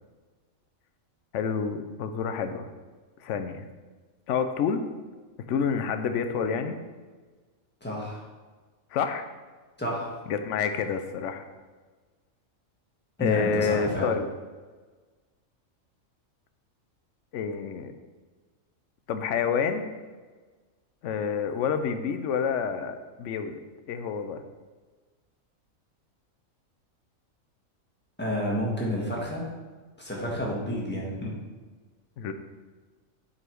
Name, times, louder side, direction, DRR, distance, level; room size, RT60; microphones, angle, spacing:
voice 1, 1.3-2.7 3.2-3.6 4.3-4.9 5.5-6.8 8.9-9.2 10.3-11.4 13.2-14.3 17.3-17.9 19.1-19.9 21.0-23.6 23.9-24.4 32.2-32.3, left 6 dB, 70° left, 8 dB, 0.9 m, -28 dB
voice 2, 7.8-8.2 9.8-10.1 13.2-14.1 28.2-29.5 30.0-31.3, equal, 10° left, -4 dB, 1.5 m, -30 dB
8.0 x 4.1 x 4.6 m, 1.4 s
omnidirectional pair, 1.4 m